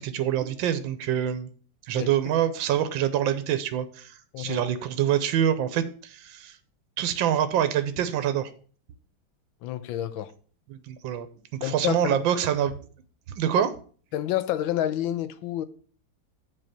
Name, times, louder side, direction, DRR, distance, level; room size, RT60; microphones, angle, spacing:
voice 1, 0.0-1.5 1.9-6.6 7.0-8.5 10.7-11.3 11.6-12.7 13.3-13.7, right 10 dB, 80° right, 1.5 m, -26 dB
voice 2, 9.6-10.3 11.6-12.1 14.1-15.6, left 12 dB, 85° left, 1.5 m, -28 dB
7.6 x 4.7 x 6.6 m
omnidirectional pair, 2.1 m